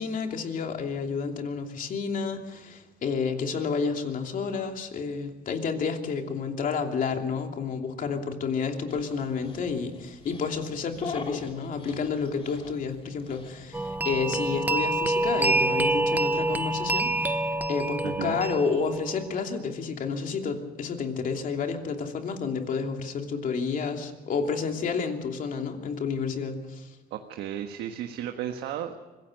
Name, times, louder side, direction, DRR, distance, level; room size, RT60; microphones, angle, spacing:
voice 1, 0.0-26.9, left 5 dB, 55° left, 4 dB, 2.9 m, -30 dB
Dog, 8.9-13.9, left 4 dB, 35° left, 2.8 m, -42 dB
sound 1, 13.7-19.4, right 2 dB, 10° right, 0.9 m, -27 dB
voice 2, 18.0-18.4 27.1-29.0, right 10 dB, 85° right, 5 dB, 1.4 m, -34 dB
24.0 x 16.5 x 6.6 m, 1.2 s
cardioid pair, 110°, 17 cm